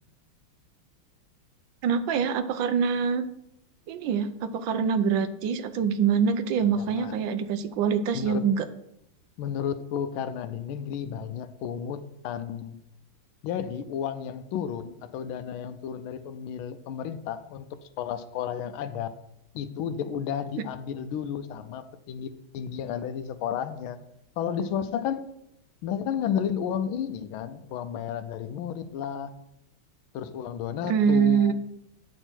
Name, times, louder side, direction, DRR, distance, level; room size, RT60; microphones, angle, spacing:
voice 1, 1.8-3.3 3.9-8.7 30.9-31.5, right 7 dB, 70° right, 10 dB, 1.4 m, -24 dB
voice 2, 6.8-7.1 8.1-8.4 9.4-12.8 13.4-19.1 19.5-24.0 24.4-25.3 25.8-29.3 30.1-31.5, left 8 dB, 85° left, 10 dB, 1.4 m, -32 dB
8.9 x 6.4 x 4.4 m, 0.82 s
omnidirectional pair, 2.3 m